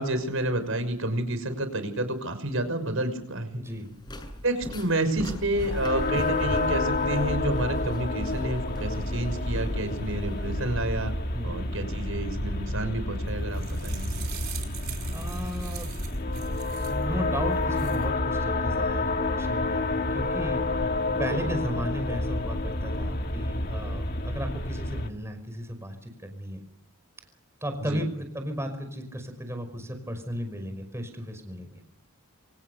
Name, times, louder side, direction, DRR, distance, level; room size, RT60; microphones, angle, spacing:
voice 1, 0.0-3.6 4.4-11.1 11.4-14.3 27.9-28.0, right 1 dB, 70° right, 10 dB, 6.1 m, -29 dB
voice 2, 3.5-3.9 11.3-11.6 15.1-15.9 16.7-20.6 21.2-26.6 27.6-31.8, equal, 10° right, 7 dB, 5.4 m, -35 dB
sound 1, 3.7-11.1, equal, 20° left, 7.6 m, -39 dB
sound 2, 5.5-25.1, left 2 dB, 45° left, 2.1 m, -29 dB
sound 3, 13.3-17.1 17.5-18.1, right 11 dB, 45° right, 4.5 m, -43 dB
27.5 x 26.5 x 6.7 m, 0.73 s
head